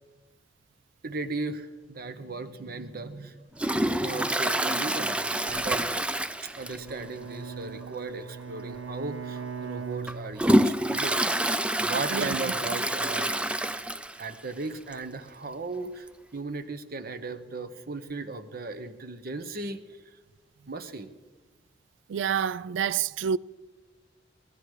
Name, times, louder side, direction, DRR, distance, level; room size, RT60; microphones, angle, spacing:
voice 1, 1.0-3.5 4.0-5.9 6.4-11.2 11.8-13.4 14.2-16.1 16.3-19.8 20.7-21.1, right 3 dB, 50° right, 1.0 m, -36 dB
Toilet flush, 3.6-7.0 7.3-7.4 7.8-7.9 8.8-8.9 9.4-14.3 14.7-14.8 14.9-15.0 16.1-16.2, right 1 dB, 5° right, 0.4 m, -27 dB
Bowed string instrument, 6.5-10.9, right 6 dB, 90° right, 0.8 m, -40 dB
voice 2, 22.1-23.4, right 8 dB, 75° right, 0.3 m, -28 dB
19.0 x 12.0 x 4.9 m
head